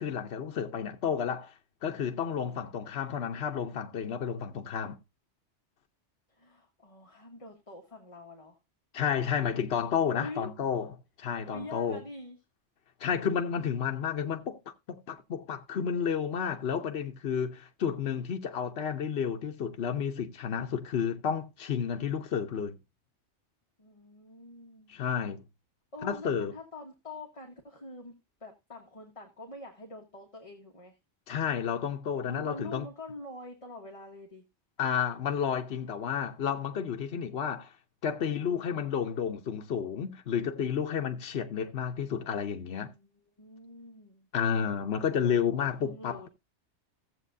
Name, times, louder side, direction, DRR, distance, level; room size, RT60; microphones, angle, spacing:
voice 1, 0.0-1.5 1.8-5.0 8.9-10.9 11.2-12.0 13.0-14.6 14.9-22.8 24.9-25.4 26.0-26.5 31.3-32.9 34.8-37.7 38.0-42.9 44.3-46.3, left 7 dB, 65° left, 1.1 m, -31 dB
voice 2, 6.3-8.6 10.1-10.5 11.5-12.4 23.8-24.9 25.9-31.0 32.3-34.4 42.7-44.3 45.5-46.3, left 2 dB, 30° left, 1.4 m, -45 dB
15.5 x 7.4 x 2.6 m
omnidirectional pair, 1.2 m